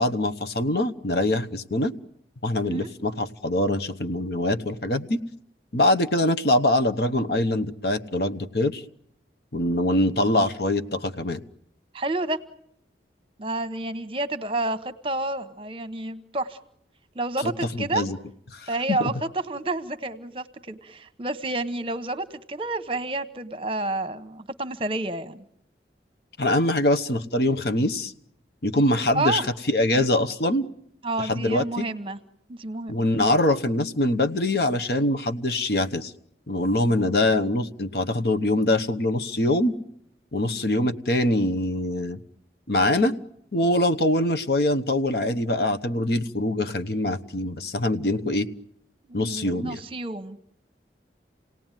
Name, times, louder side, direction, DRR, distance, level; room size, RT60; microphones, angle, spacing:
voice 1, 0.0-1.9 2.4-5.2 5.7-8.8 9.5-11.4 17.4-17.5 17.8-18.2 18.5-18.7 19.0-19.1 26.4-28.1 28.6-30.7 31.2-31.8 32.9-36.1 36.5-39.7 40.3-42.2 42.7-43.1 43.5-48.5 49.1-49.8, left 1 dB, 60° left, 8 dB, 1.0 m, -23 dB
voice 2, 11.9-12.4 13.4-16.6 17.1-18.1 18.7-25.4 29.1-29.5 31.0-32.2 32.5-33.0 49.1-50.4, right 2 dB, 30° right, 11 dB, 1.0 m, -29 dB
28.5 x 18.0 x 9.1 m, 0.75 s
head